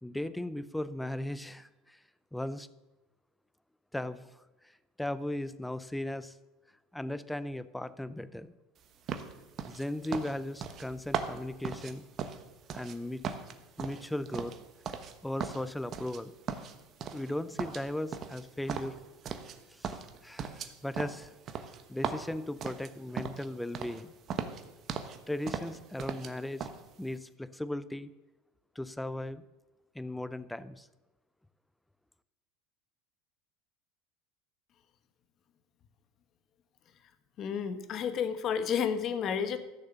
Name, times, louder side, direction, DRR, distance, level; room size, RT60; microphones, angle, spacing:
voice 1, 0.0-2.0 2.3-2.7 3.9-4.3 5.0-6.4 6.9-8.5 9.7-12.0 12.7-13.2 13.8-14.5 15.2-16.3 17.1-19.0 19.7-21.3 21.9-24.1 25.3-26.7 27.0-28.1 28.8-29.4 29.9-30.9, left 1 dB, 5° left, 15 dB, 0.6 m, -37 dB
sound 1, 9.1-13.0 13.2-15.1 15.4-16.2 16.5-17.3 17.6-19.6 19.8-23.5 23.7-24.0 24.3-25.2 25.5-26.3 26.6-26.8, right 7 dB, 40° right, 1.2 m, -38 dB
voice 2, 37.4-39.6, left 7 dB, 40° left, 10 dB, 1.2 m, -31 dB
14.0 x 6.6 x 6.9 m, 1.1 s
supercardioid pair, 120°, 0 cm